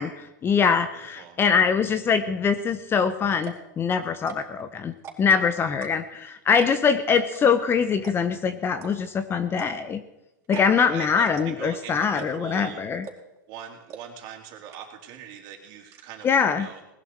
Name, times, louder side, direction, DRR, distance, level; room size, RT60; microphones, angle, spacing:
voice 1, 0.0-10.0 10.5-13.1 16.2-16.7, left 6 dB, 20° left, 11 dB, 1.0 m, -23 dB
sound 1, 2.9-3.0 3.3-3.7 4.2-4.6 4.9-5.4 5.8-6.2 6.6-6.9 7.3-7.4 7.7-7.8 8.0-8.4 8.8-8.9 9.5-10.0 10.4-10.7 10.9-11.0 11.4-11.7 12.2-12.6 13.0-13.4 13.9-14.0 14.3-14.4 14.7-15.1 15.4-16.0, right 8 dB, 25° right, 4.4 m, -41 dB
voice 2, 10.5-12.8 13.5-16.8, right 9 dB, 45° right, 2 dB, 3.6 m, -41 dB
20.0 x 12.0 x 4.7 m, 0.93 s
hypercardioid pair, 120°, 10 cm